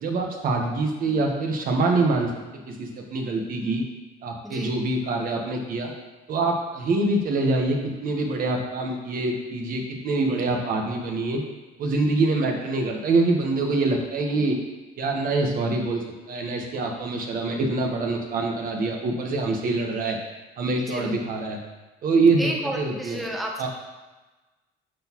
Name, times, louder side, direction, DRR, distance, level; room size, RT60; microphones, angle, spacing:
voice 1, 0.0-2.3 2.7-3.8 4.2-5.9 6.3-11.4 11.8-14.6 15.0-20.2 20.6-21.6 22.0-22.4 22.7-23.2 23.6-23.7, right 3 dB, 55° right, 1 dB, 1.3 m, -25 dB
voice 2, 4.4-4.8 20.8-21.1 22.4-23.7, equal, ahead, 0 dB, 0.9 m, -32 dB
11.5 x 4.1 x 3.0 m, 1.2 s
cardioid pair, 110°, 17 cm